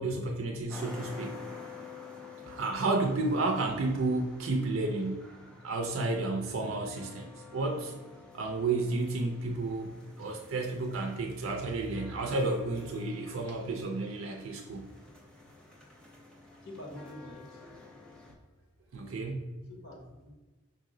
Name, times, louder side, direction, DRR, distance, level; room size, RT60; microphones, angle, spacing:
voice 1, 0.0-1.4 2.4-5.3 5.6-7.3 7.5-7.9 8.3-14.9 18.9-19.5, right 2 dB, 70° right, 2 dB, 0.4 m, -31 dB
sound 1, 0.7-18.3, left 4 dB, 5° left, 0.6 m, -50 dB
voice 2, 16.6-18.1 18.9-19.1 19.7-20.4, left 1 dB, 75° left, -1 dB, 1.1 m, -48 dB
5.2 x 2.0 x 3.7 m, 1.2 s
head